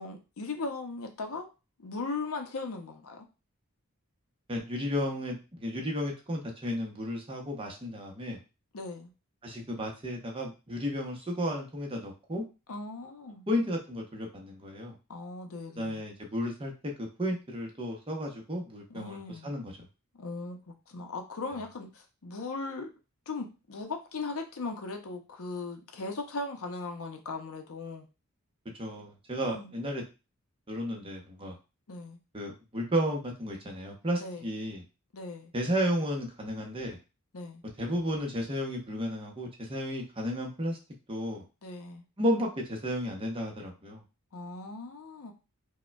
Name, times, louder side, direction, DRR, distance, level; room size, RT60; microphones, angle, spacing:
voice 1, 0.0-1.5 1.8-3.3 8.7-9.1 12.7-13.5 15.1-16.0 18.9-19.5 20.1-22.9 23.3-28.1 29.4-29.8 31.9-32.2 34.2-34.4 35.1-35.5 37.3-37.6 41.6-42.0 44.3-45.3, left 3 dB, 75° left, 5 dB, 0.6 m, -38 dB
voice 2, 4.5-8.4 9.4-12.4 13.5-14.9 15.8-19.9 28.8-30.0 30.7-31.5 32.3-34.8 35.5-37.0 37.8-40.8 41.1-41.4 42.2-44.0, equal, 25° right, 1 dB, 0.7 m, -33 dB
5.0 x 2.2 x 2.2 m, 0.30 s
head